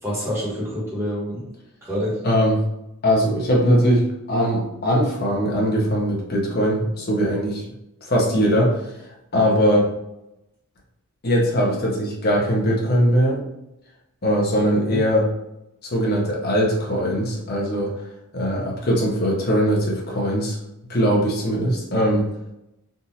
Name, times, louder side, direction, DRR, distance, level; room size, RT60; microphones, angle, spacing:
voice 1, 0.0-1.4 1.8-2.2 14.7-15.0, equal, 10° right, -7 dB, 1.3 m, -27 dB
voice 2, 2.2-2.6 3.0-7.6 8.0-8.8 9.3-9.9 11.2-13.4 14.2-15.3 15.8-17.9 18.3-20.6 20.8-22.2, equal, 45° left, -2 dB, 0.9 m, -20 dB
3.6 x 2.6 x 2.7 m, 0.88 s
head